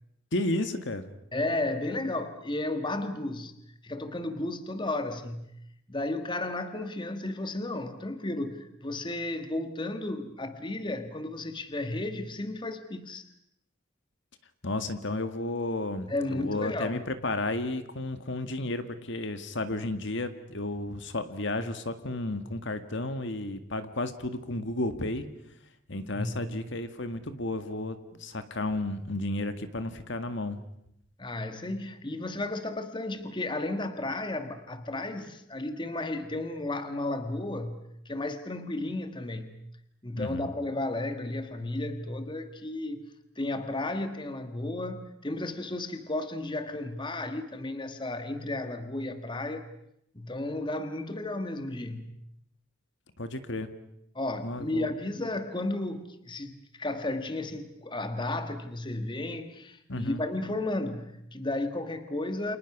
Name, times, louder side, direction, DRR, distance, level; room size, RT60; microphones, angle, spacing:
voice 1, 0.3-1.0 14.6-25.3 25.9-30.6 40.2-40.5 53.2-53.7 54.4-54.9 59.9-60.2, left 2 dB, 60° left, 10 dB, 1.8 m, -32 dB
voice 2, 1.3-3.6 3.8-5.5 5.9-13.2 16.1-17.0 26.1-26.5 31.2-39.6 40.0-43.1 43.4-49.7 50.1-52.1 54.1-62.6, left 2 dB, 25° left, 8 dB, 1.5 m, -33 dB
29.5 x 27.0 x 6.1 m, 0.77 s
head